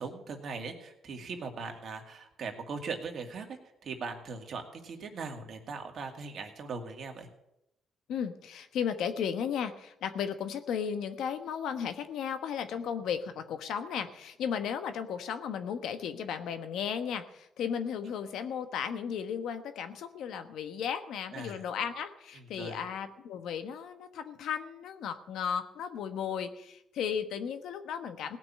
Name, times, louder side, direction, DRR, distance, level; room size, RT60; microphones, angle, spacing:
voice 1, 0.0-7.3 21.3-21.6 22.3-22.8, right 4 dB, 55° right, 3 dB, 2.3 m, -40 dB
voice 2, 8.1-28.4, left 7 dB, 80° left, 9 dB, 1.2 m, -35 dB
17.5 x 6.0 x 8.6 m, 0.85 s
cardioid pair, 90°, 0 cm